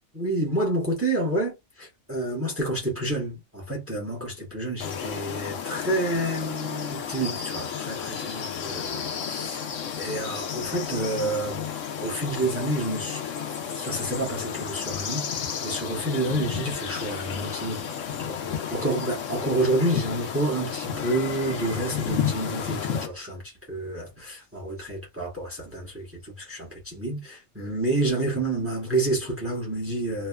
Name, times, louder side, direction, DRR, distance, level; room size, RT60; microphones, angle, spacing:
voice 1, 0.1-9.6 10.0-11.7 12.0-13.3 13.7-15.3 15.6-17.8 18.3-18.4 18.7-30.3, right 2 dB, 10° right, 0.9 m, -29 dB
sound 1, 4.8-23.1, left 7 dB, 80° left, 1.0 m, -32 dB
3.0 x 2.2 x 2.2 m
omnidirectional pair, 1.3 m